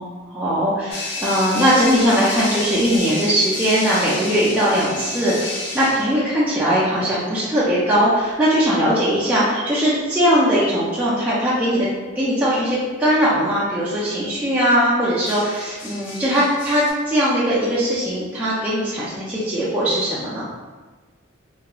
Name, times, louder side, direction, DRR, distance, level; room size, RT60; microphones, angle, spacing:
voice 1, 0.0-11.9 12.1-20.4, equal, 5° right, -10 dB, 0.4 m, -20 dB
sound 1, 0.9-6.2 9.7-10.0 15.3-16.9, left 2 dB, 55° left, 0.5 m, -31 dB
2.9 x 2.4 x 2.3 m, 1.3 s
head